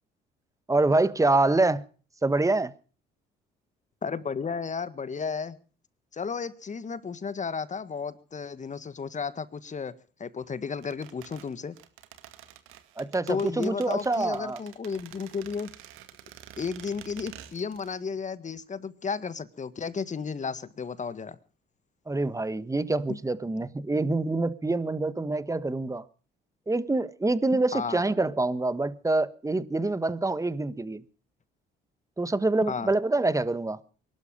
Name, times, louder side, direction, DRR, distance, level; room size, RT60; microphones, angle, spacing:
voice 1, 0.7-1.8 2.2-2.7 13.0-14.6 22.1-26.0 26.7-31.0 32.2-33.8, right 2 dB, 15° right, 1.2 m, -26 dB
voice 2, 4.0-5.6 6.1-9.9 10.2-11.7 13.3-15.7 16.6-21.3 27.7-28.0 32.6-32.9, left 5 dB, 35° left, 1.6 m, -33 dB
sound 1, 10.8-18.0 18.2-18.3, right 12 dB, 80° right, 2.1 m, -48 dB
22.5 x 12.5 x 5.3 m
supercardioid pair, 70°, 21 cm